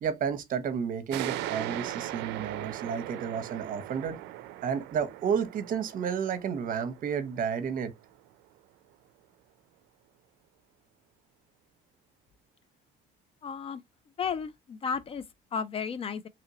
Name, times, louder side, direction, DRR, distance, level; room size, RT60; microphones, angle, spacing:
voice 1, 0.0-4.2 4.6-7.9, right 7 dB, 55° right, 0.7 m, -31 dB
sound 1, 1.1-8.3, right 15 dB, 90° right, 0.4 m, -39 dB
voice 2, 13.4-13.8 14.2-15.2 15.5-16.2, left 6 dB, 35° left, 0.4 m, -33 dB
3.0 x 2.8 x 2.7 m
cardioid pair, 110°, 17 cm